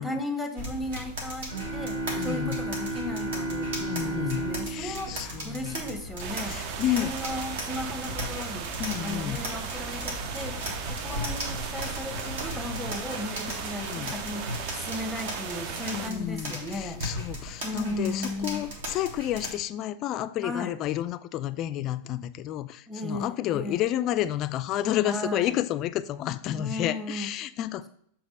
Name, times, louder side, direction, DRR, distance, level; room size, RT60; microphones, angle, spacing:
voice 1, 0.0-3.7 4.0-6.6 6.8-8.7 9.0-10.6 10.9-17.0 17.6-18.7 20.4-20.8 22.9-23.8 25.0-25.6 26.6-27.3, left 2 dB, ahead, 0.8 m, -35 dB
sound 1, 0.6-19.5, equal, 60° right, 1.4 m, -37 dB
sound 2, 1.5-6.2, right 2 dB, 75° right, 1.8 m, -33 dB
voice 2, 2.2-2.6 3.8-5.8 6.4-7.2 8.8-9.4 13.5-14.1 15.9-27.9, left 12 dB, 35° left, 0.3 m, -31 dB
sound 3, 6.2-16.1, right 6 dB, 45° right, 0.6 m, -36 dB
7.1 x 3.0 x 5.1 m
figure-of-eight pair, 90°, 0 cm